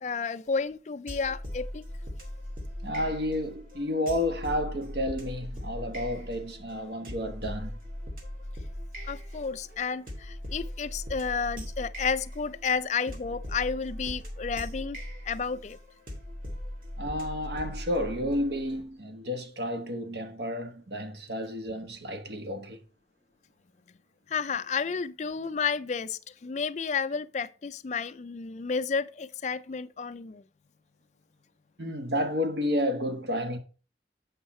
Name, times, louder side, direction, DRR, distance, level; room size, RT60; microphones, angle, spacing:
voice 1, 0.0-1.8 9.1-15.0 15.3-15.8 24.3-30.4, left 5 dB, 40° left, 0.4 m, -31 dB
sound 1, 1.1-18.8, equal, 50° right, 2.1 m, -39 dB
voice 2, 2.8-7.8 17.0-22.8 31.8-33.6, left 1 dB, 75° right, 1.3 m, -31 dB
8.1 x 5.5 x 4.3 m
head